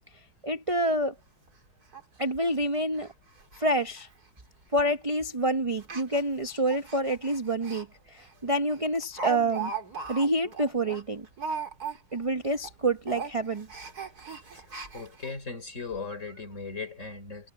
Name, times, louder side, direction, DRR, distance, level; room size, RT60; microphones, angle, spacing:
voice 1, 0.4-1.1 2.2-3.1 3.6-4.1 4.7-9.7 10.1-11.3 12.1-13.7, right 1 dB, 25° right, 0.8 m, -27 dB
Speech, 1.0-1.1 1.5-1.6 1.9-2.0 2.3-2.5 2.9-3.1 3.4-3.6 3.9-4.0 4.8-5.0 5.8-7.8 8.2-8.3 8.7-12.3 12.5-12.7 13.0-15.3 15.9-16.0 16.3-16.4, right 5 dB, 50° right, 4.1 m, -38 dB
voice 2, 14.9-17.5, left 4 dB, 40° left, 4.1 m, -38 dB
omnidirectional pair, 2.1 m